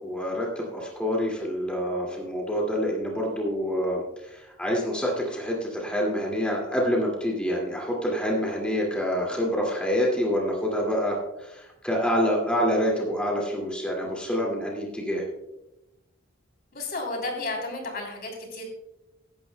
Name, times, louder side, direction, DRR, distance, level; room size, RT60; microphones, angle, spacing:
voice 1, 0.0-15.2, equal, 5° left, -2 dB, 2.2 m, -27 dB
voice 2, 16.7-18.6, left 2 dB, 50° left, 1 dB, 3.4 m, -32 dB
16.0 x 11.5 x 2.2 m, 0.92 s
head